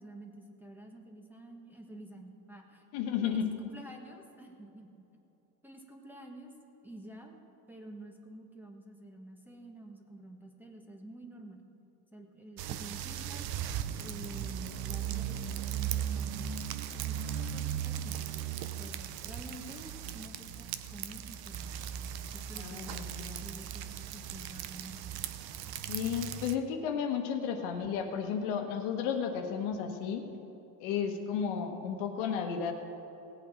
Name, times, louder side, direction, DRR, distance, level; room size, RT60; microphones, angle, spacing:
voice 1, 0.0-2.8 3.2-5.0 5.6-6.5 6.8-7.4 7.7-11.6 12.1-13.5 14.0-18.3 18.8-21.8 22.3-25.2, right 1 dB, 5° right, 2 dB, 1.2 m, -49 dB
voice 2, 2.9-3.4 22.6-23.6 25.9-30.2 30.8-32.7, left 7 dB, 80° left, 5 dB, 1.4 m, -33 dB
sound 1, 12.6-26.6, right 9 dB, 55° right, 0.7 m, -37 dB
17.5 x 8.3 x 5.0 m, 2.9 s
cardioid pair, 125°, 44 cm